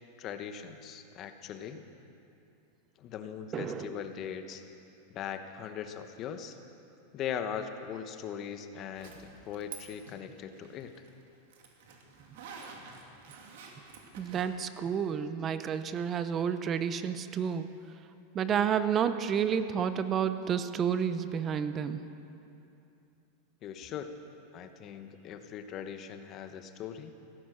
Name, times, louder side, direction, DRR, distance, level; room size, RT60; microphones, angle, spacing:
voice 1, 0.2-1.8 3.0-4.6 5.1-6.6 7.1-11.0 23.6-24.1 24.5-27.1, left 8 dB, 35° left, 8 dB, 1.1 m, -40 dB
voice 2, 3.5-3.9 14.2-17.7 18.3-22.0, right 8 dB, 25° right, 11 dB, 0.7 m, -30 dB
Zipper (clothing), 9.0-9.8 10.1-14.4, right 6 dB, 70° right, 2.6 m, -48 dB
16.5 x 13.0 x 6.3 m, 2.7 s
supercardioid pair, 140°, 0 cm